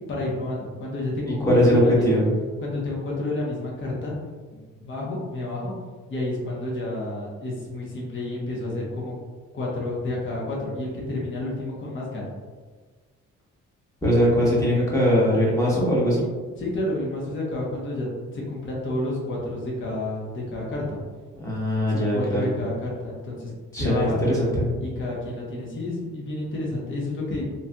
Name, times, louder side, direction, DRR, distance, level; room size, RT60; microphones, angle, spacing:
voice 1, 0.1-2.2 2.6-4.1 4.5-5.7 6.1-9.1 9.5-12.3 16.6-21.0 21.9-24.2 24.8-27.5, left 2 dB, 40° left, -4 dB, 0.9 m, -30 dB
voice 2, 1.4-2.3 14.0-16.2 21.3-22.5 23.7-24.7, equal, 10° left, -6 dB, 1.1 m, -21 dB
3.2 x 2.7 x 2.2 m, 1.4 s
cardioid pair, 90°, 30 cm